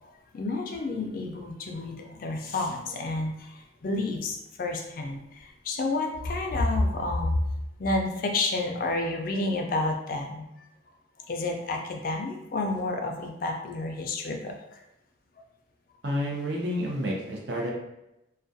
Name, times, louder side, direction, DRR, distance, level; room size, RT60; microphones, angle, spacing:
voice 1, 0.0-7.4 7.8-10.5 11.3-14.8, left 2 dB, 50° left, 2 dB, 0.3 m, -30 dB
voice 2, 16.0-17.7, equal, 65° right, -1 dB, 0.6 m, -29 dB
2.3 x 2.2 x 2.5 m, 0.90 s
head